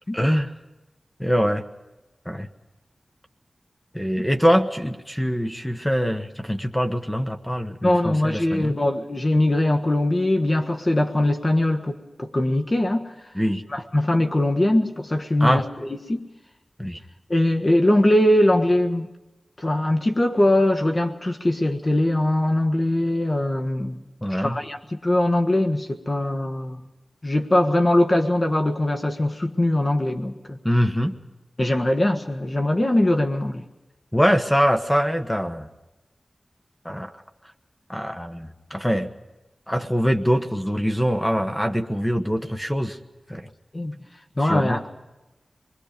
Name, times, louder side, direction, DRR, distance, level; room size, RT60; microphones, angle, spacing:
voice 1, 0.1-0.5 1.2-1.6 2.2-2.5 3.9-8.7 13.3-13.6 15.4-15.6 16.8-17.0 24.2-24.6 30.6-31.1 34.1-35.7 36.8-37.1 37.9-39.1 39.7-43.0 43.3-43.5 44.4-44.8, equal, 10° left, 6 dB, 1.3 m, -23 dB
voice 2, 7.8-13.1 13.7-16.2 17.3-19.1 19.6-24.0 24.3-26.9 27.2-30.6 31.6-33.6 43.7-43.9 44.4-44.9, left 1 dB, 35° left, 5 dB, 1.5 m, -21 dB
27.0 x 21.5 x 5.2 m, 1.0 s
wide cardioid pair, 60°, 0 cm